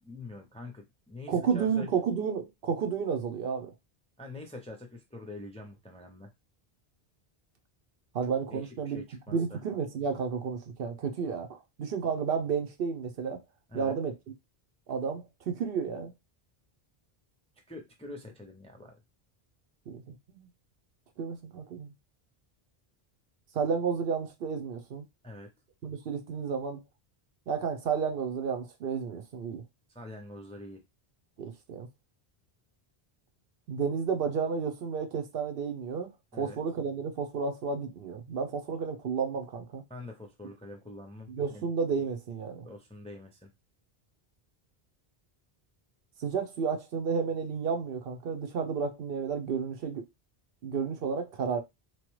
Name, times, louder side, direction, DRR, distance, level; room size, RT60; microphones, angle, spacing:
voice 1, 0.0-1.9 4.2-6.3 8.5-9.6 13.7-13.9 17.7-18.9 25.2-25.5 29.9-30.8 36.3-36.6 39.9-41.7 42.6-43.5, left 2 dB, 10° left, 0.4 m, -45 dB
voice 2, 1.3-3.7 8.1-9.0 9.3-13.4 13.7-14.1 14.9-16.1 19.9-20.5 21.2-21.9 23.5-25.1 25.8-26.8 27.5-29.6 31.4-31.9 33.7-39.8 41.3-42.7 46.2-50.0 50.6-51.6, right 6 dB, 70° right, 0.8 m, -32 dB
3.0 x 2.2 x 3.0 m
omnidirectional pair, 1.0 m